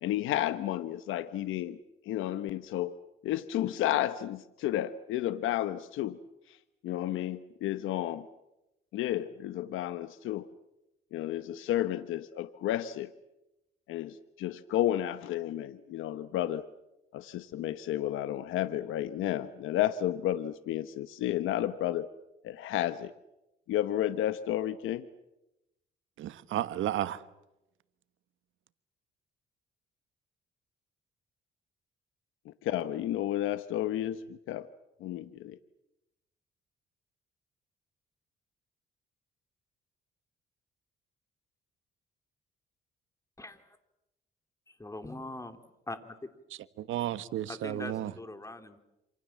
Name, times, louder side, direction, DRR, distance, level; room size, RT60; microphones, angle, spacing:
voice 1, 0.0-1.8 2.0-3.0 3.2-6.2 6.5-6.6 6.8-8.3 8.9-10.5 11.1-13.1 13.9-16.7 17.1-22.1 22.4-23.1 23.7-25.1 32.4-34.7 35.0-35.6, left 12 dB, 90° left, 1.0 m, -32 dB
voice 2, 26.2-27.2 46.8-48.1, right 12 dB, 80° right, 1.4 m, -33 dB
voice 3, 43.4-43.8 44.8-45.6 45.9-46.3 47.5-48.8, left 2 dB, 15° left, 3.2 m, -42 dB
27.5 x 27.0 x 7.4 m
cardioid pair, 90°, 20 cm